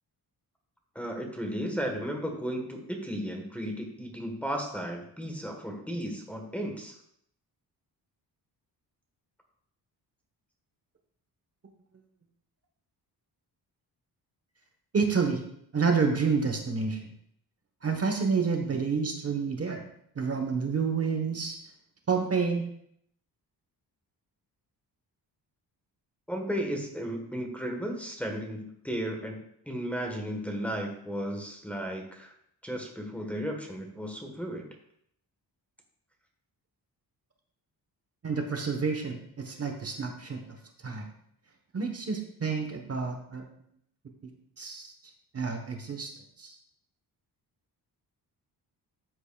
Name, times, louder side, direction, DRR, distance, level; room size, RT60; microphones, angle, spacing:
voice 1, 0.9-6.9 26.3-29.4 29.6-32.3 32.6-34.7, equal, 5° left, 1 dB, 1.2 m, -34 dB
voice 2, 14.9-15.4 15.7-17.1 17.8-19.8 20.1-21.6 22.1-22.7 38.2-40.6 40.8-41.1 41.7-43.4 44.2-44.3 44.6-44.9 45.3-46.1 46.4-46.6, right 5 dB, 35° right, 3 dB, 1.1 m, -29 dB
13.5 x 7.9 x 2.3 m, 0.70 s
wide cardioid pair, 165°, 40 cm